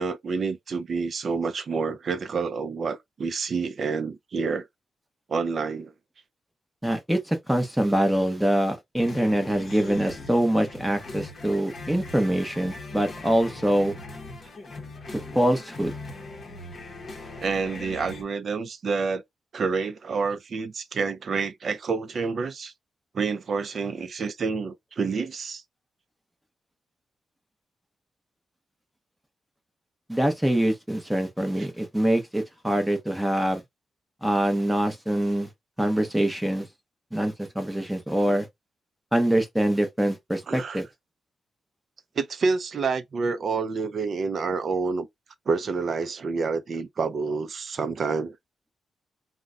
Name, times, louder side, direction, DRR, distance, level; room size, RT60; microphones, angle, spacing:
voice 1, 0.0-4.7 5.3-5.9 17.4-19.2 19.5-22.7 23.1-25.6 38.3-38.4 40.5-40.8 42.2-45.1 45.5-48.4, right 4 dB, 45° right, 0.4 m, -28 dB
voice 2, 6.8-13.9 15.1-15.9 30.1-33.6 34.2-35.5 35.8-36.7 37.1-38.5 39.1-40.9, right 1 dB, 5° right, 0.7 m, -24 dB
sound 1, 9.0-18.2, left 2 dB, 40° left, 0.7 m, -40 dB
2.3 x 2.1 x 3.6 m
wide cardioid pair, 145°, 0 cm